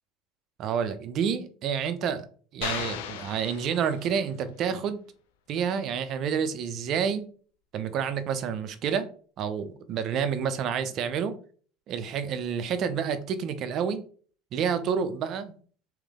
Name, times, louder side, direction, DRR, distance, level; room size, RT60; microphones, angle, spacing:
voice 1, 0.6-2.3 2.5-5.0 5.5-7.3 7.7-9.1 9.4-11.4 11.9-14.0 14.5-15.5, right 7 dB, 50° right, 0.6 m, -29 dB
sound 1, 2.6-4.3, left 8 dB, 75° left, 0.5 m, -36 dB
3.3 x 3.1 x 3.6 m
hypercardioid pair, 80°, 0 cm